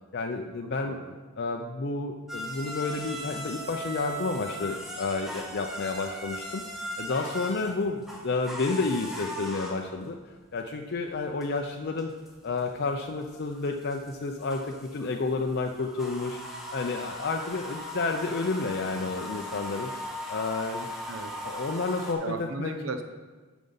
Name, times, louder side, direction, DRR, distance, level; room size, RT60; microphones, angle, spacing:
voice 1, 0.1-1.0 1.4-6.6 7.0-10.2 10.5-12.1 12.4-16.4 16.7-19.9 20.3-20.9 21.4-22.7, left 3 dB, 50° left, 2 dB, 0.5 m, -30 dB
sound 1, 2.3-22.1, equal, ahead, 1.1 m, -39 dB
voice 2, 21.1-21.4 22.2-23.0, right 3 dB, 60° right, 7 dB, 0.7 m, -36 dB
9.3 x 5.2 x 5.5 m, 1.3 s
head